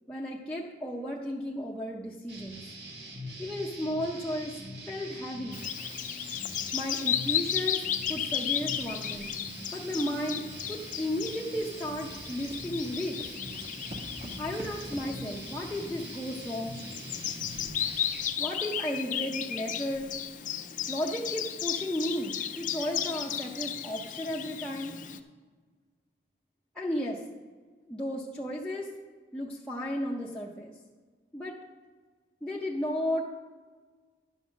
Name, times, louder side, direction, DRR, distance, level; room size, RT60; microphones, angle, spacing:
voice 1, 0.1-2.6 3.4-4.6 4.9-5.6 6.7-7.8 8.1-9.3 9.7-13.2 14.4-16.8 18.4-20.1 20.9-24.9 26.7-27.2 27.9-28.9 29.3-30.7 31.3-31.6 32.4-33.2, equal, 5° left, -4 dB, 0.6 m, -34 dB
sound 1, 2.3-18.3, right 1 dB, 70° right, 1.5 m, -43 dB
Bird vocalization bird call bird song, 5.5-25.2, left 9 dB, 45° left, 0.5 m, -35 dB
sound 2, 9.3-18.3 18.6-18.7 19.2-19.3 19.8-20.3, equal, 45° right, 1.6 m, -49 dB
10.5 x 5.5 x 6.1 m, 1.5 s
head